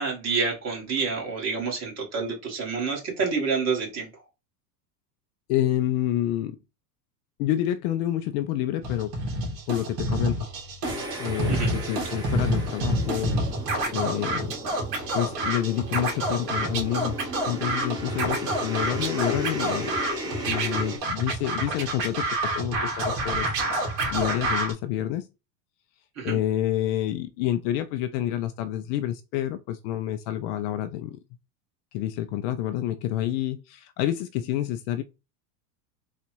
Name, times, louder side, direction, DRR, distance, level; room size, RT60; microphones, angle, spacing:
voice 1, 0.0-4.1 11.5-11.7 26.2-26.4, right 5 dB, 30° right, 2.0 m, -28 dB
voice 2, 5.5-6.6 7.4-9.1 9.7-10.5 11.2-13.4 13.9-14.5 15.1-17.2 17.5-20.0 20.5-22.3 22.5-23.5 24.1-25.3 26.2-31.2 31.9-35.0, left 12 dB, 50° left, 0.5 m, -28 dB
Scratching (performance technique), 8.8-24.7, right 1 dB, 45° right, 2.2 m, -28 dB
sound 1, 10.8-21.0, equal, 10° right, 1.1 m, -35 dB
4.0 x 2.5 x 4.4 m
supercardioid pair, 140°, 49 cm